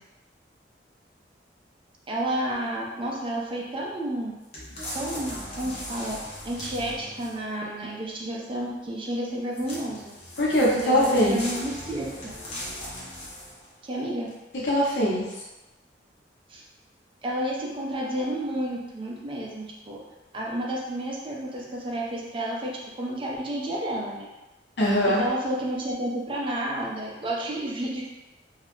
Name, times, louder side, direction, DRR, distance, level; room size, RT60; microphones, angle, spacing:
voice 1, 2.1-4.3 4.9-6.2 6.4-10.2 10.7-12.3 13.8-14.3 16.5-16.6 17.2-20.0 20.3-24.3 25.1-28.0, right 1 dB, 30° right, -3 dB, 0.4 m, -31 dB
sound 1, 4.5-7.5 9.5-13.7 14.3-14.4, left 1 dB, 35° left, 0.6 m, -38 dB
voice 2, 10.4-11.4 14.6-15.2 24.8-25.2, equal, 85° left, -6 dB, 0.8 m, -21 dB
2.3 x 2.0 x 3.0 m, 1.1 s
head